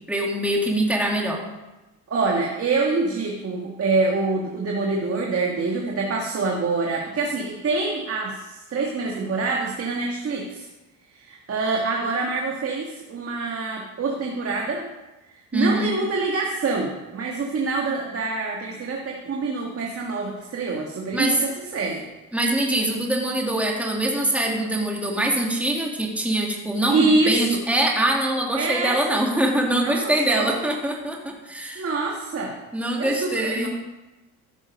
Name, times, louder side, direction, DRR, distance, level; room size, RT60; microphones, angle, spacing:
voice 1, 0.1-1.4 15.5-15.9 21.1-21.4 22.3-31.9 32.7-33.7, right 1 dB, 5° right, -1 dB, 2.3 m, -23 dB
voice 2, 2.1-10.7 11.2-14.9 15.5-22.0 26.9-27.6 28.5-29.2 29.8-30.6 31.8-32.6 33.0-33.7, right 3 dB, 40° right, -1 dB, 1.8 m, -25 dB
13.5 x 6.1 x 5.3 m, 1.1 s
supercardioid pair, 90°, 36 cm